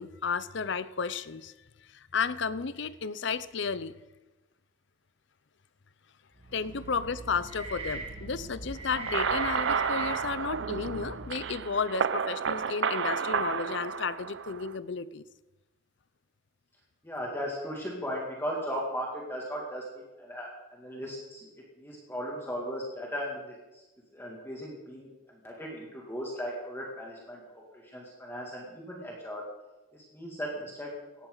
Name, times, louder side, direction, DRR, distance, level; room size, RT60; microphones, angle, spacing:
voice 1, 0.0-1.5 1.9-3.9 6.5-15.2, left 5 dB, 60° left, 16 dB, 0.6 m, -33 dB
sound 1, 6.3-11.7, right 3 dB, 30° right, 1.7 m, -41 dB
sound 2, 8.9-14.7, right 6 dB, 65° right, 0.6 m, -31 dB
voice 2, 17.0-19.8 20.2-23.8 24.1-29.4 29.9-30.9, equal, 10° left, -3 dB, 2.4 m, -37 dB
17.5 x 13.5 x 4.0 m, 1.1 s
head